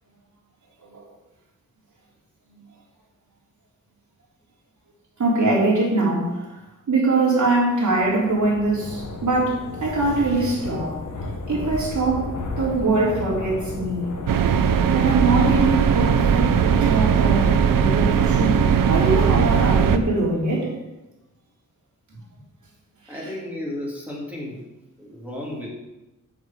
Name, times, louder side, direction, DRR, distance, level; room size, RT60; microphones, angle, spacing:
voice 1, 5.2-6.6 6.9-11.1 11.5-14.2 14.9-20.7 23.1-23.2, right 2 dB, 60° right, -5 dB, 3.5 m, -23 dB
sound 1, 7.9-19.9, left 2 dB, 65° left, 1.4 m, -34 dB
sound 2, 14.3-20.0, right 7 dB, 75° right, 0.6 m, -19 dB
voice 2, 23.1-24.6 25.0-25.7, left 1 dB, 5° right, -5 dB, 2.3 m, -33 dB
7.8 x 5.0 x 7.0 m, 1.0 s
wide cardioid pair, 100°, 33 cm